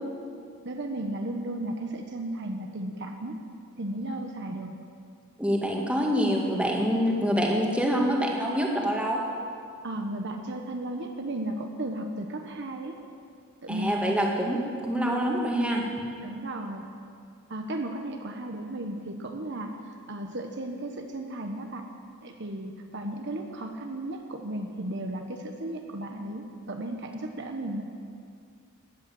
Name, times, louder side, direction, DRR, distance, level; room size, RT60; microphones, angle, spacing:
voice 1, 0.6-3.3 3.8-4.7 9.8-13.0 13.6-14.0 15.0-15.2 16.2-16.9 17.5-19.7 20.1-21.8 22.2-27.8, right 1 dB, 55° right, 3 dB, 1.1 m, -34 dB
voice 2, 5.4-9.2 13.7-15.8, equal, 5° right, -1 dB, 1.9 m, -26 dB
17.0 x 10.5 x 7.8 m, 2.3 s
head